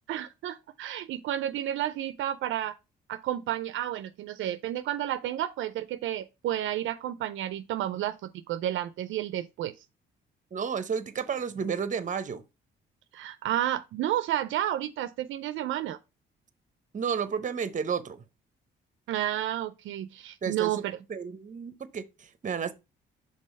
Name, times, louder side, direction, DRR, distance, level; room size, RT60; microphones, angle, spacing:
voice 1, 0.1-2.8 3.1-9.7 13.1-16.0 19.1-21.0, right 12 dB, 75° right, 0.5 m, -31 dB
voice 2, 10.5-12.4 16.9-18.2 20.4-20.8 21.1-22.7, right 6 dB, 40° right, 0.8 m, -32 dB
5.4 x 3.8 x 5.2 m
cardioid pair, 90°, 20 cm